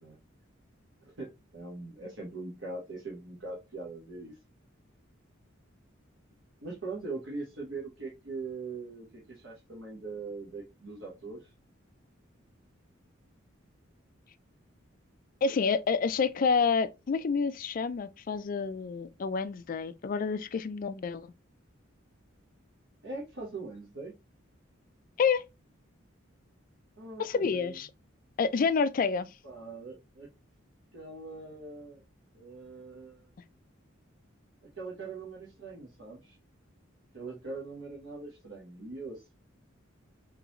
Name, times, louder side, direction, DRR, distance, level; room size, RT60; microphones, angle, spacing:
voice 1, 1.0-4.4 6.6-11.5 23.0-24.1 27.0-27.8 29.4-30.3 30.9-32.0 32.3-33.3 34.8-36.4 37.1-39.3, right 3 dB, 65° right, 1.0 m, -41 dB
voice 2, 15.4-21.3 25.2-25.4 27.2-27.9 28.4-29.3, left 5 dB, 45° left, 0.3 m, -28 dB
3.7 x 2.9 x 2.9 m
head